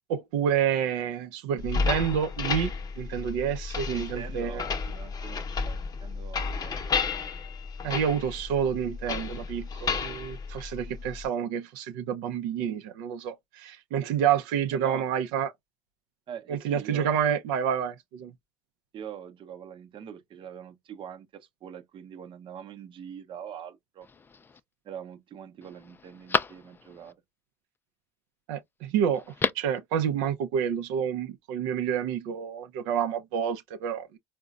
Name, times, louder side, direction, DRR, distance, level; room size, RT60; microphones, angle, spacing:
voice 1, 0.1-2.7 3.0-4.6 7.8-15.5 16.5-18.3 28.5-29.2 29.5-34.2, right 8 dB, 85° right, 0.5 m, -28 dB
sound 1, 1.6-11.2, left 5 dB, 35° left, 0.7 m, -32 dB
voice 2, 3.9-6.8 7.0-7.1 14.7-15.1 16.3-17.1 18.9-24.1 24.8-27.2, right 8 dB, 45° right, 0.7 m, -43 dB
Telephone, 24.0-24.6 25.1-25.2 25.6-27.1 29.1-29.8 30.1-30.2, left 4 dB, 20° left, 0.3 m, -32 dB
3.8 x 2.1 x 2.3 m
supercardioid pair, 95°, 12 cm